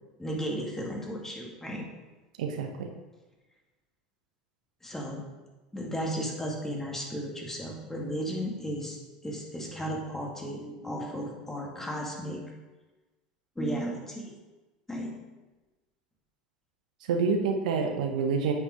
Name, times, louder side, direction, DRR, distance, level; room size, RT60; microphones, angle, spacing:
voice 1, 0.2-1.9 4.8-5.2 5.7-12.5 13.6-14.3 14.9-15.2, equal, 10° left, -1 dB, 2.2 m, -34 dB
voice 2, 2.4-2.9 17.1-18.5, right 5 dB, 70° right, 4 dB, 0.9 m, -27 dB
8.0 x 6.0 x 5.0 m, 1.2 s
figure-of-eight pair, 75°, 4 cm